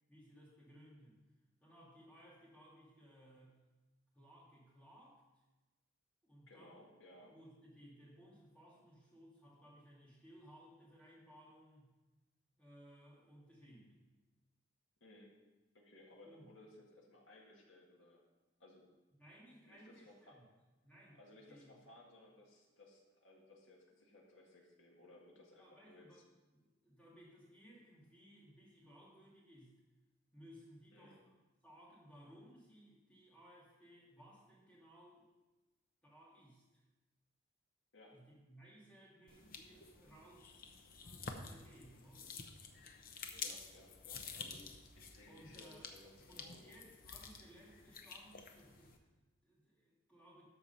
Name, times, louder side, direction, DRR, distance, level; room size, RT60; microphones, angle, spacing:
voice 1, 0.1-1.2 1.6-3.6 4.1-5.4 6.2-6.8 7.2-11.9 12.5-14.1 16.2-16.5 19.1-20.4 20.8-21.8 25.6-29.8 30.3-31.3 31.6-35.3 36.0-36.8 38.1-42.4 45.3-45.9 46.3-50.5, equal, 5° left, -6 dB, 2.6 m, -61 dB
voice 2, 6.5-7.3 15.0-15.3 15.7-18.2 18.6-18.9 19.7-20.4 21.2-26.2 30.9-31.2 37.9-38.2 43.4-44.7 44.9-46.7, left 1 dB, 65° left, -1 dB, 1.9 m, -61 dB
sound 1, 39.3-49.0, left 5 dB, 45° left, 0.8 m, -50 dB
12.5 x 4.6 x 5.6 m, 1.1 s
head